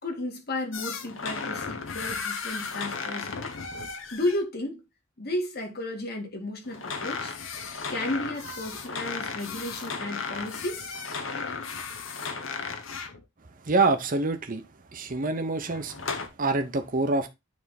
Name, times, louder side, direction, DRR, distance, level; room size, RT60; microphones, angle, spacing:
voice 1, 0.0-3.5 4.1-4.8 5.2-7.3 7.9-10.9, left 1 dB, 55° left, 2.1 m, -33 dB
sound 1, 0.7-4.4 6.7-13.2 15.6-16.3, left 5 dB, 75° left, 1.2 m, -35 dB
voice 2, 13.7-14.6 14.9-15.9 16.4-17.3, right 3 dB, 45° right, 0.8 m, -25 dB
9.3 x 3.6 x 4.2 m
head